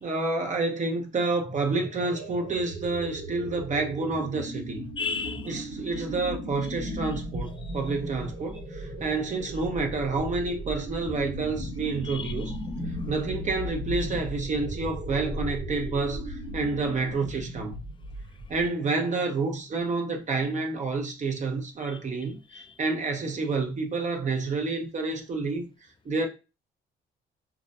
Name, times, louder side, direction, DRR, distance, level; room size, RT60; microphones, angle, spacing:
voice 1, 0.0-4.8 5.4-12.5 13.1-17.8 18.5-22.4 22.8-25.7 26.1-26.3, right 3 dB, 40° right, 0.6 m, -29 dB
sound 1, 1.4-18.8, equal, 80° right, 1.0 m, -37 dB
voice 2, 5.0-5.5 6.8-7.2 11.5-11.7 12.0-13.3 14.1-14.2 22.5-22.6, left 5 dB, 25° left, 0.3 m, -36 dB
2.4 x 2.1 x 2.5 m
cardioid pair, 90°, 20 cm